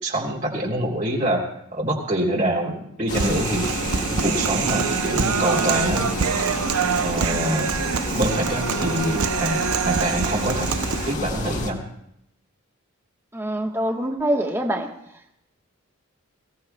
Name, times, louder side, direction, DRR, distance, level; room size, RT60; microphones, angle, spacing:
voice 1, 0.0-1.4 1.7-3.7 4.1-6.1 6.9-10.7 11.0-11.8, right 1 dB, 35° right, -1 dB, 3.4 m, -25 dB
sound 1, 3.1-11.7, left 1 dB, 35° left, 1.8 m, -30 dB
Human voice, 3.1-11.1, right 6 dB, 90° right, 0.6 m, -25 dB
voice 2, 13.3-14.9, right 1 dB, 10° right, 2 dB, 1.2 m, -24 dB
24.0 x 17.5 x 2.3 m, 0.75 s
head